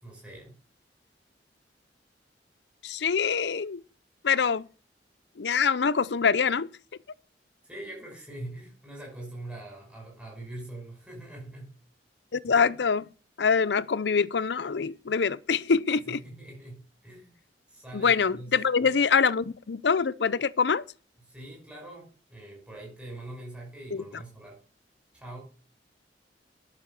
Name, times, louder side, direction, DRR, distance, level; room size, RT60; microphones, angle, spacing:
voice 1, 0.0-0.5 7.6-11.7 16.0-17.3 17.7-18.5 18.8-18.9 21.3-24.6 25.1-25.4, right 1 dB, 5° right, 6.1 m, -43 dB
voice 2, 2.8-3.8 4.2-4.7 5.4-6.7 12.3-13.1 13.4-16.2 17.9-20.8 23.9-24.0, left 5 dB, 75° left, 0.6 m, -25 dB
11.0 x 7.0 x 7.0 m
head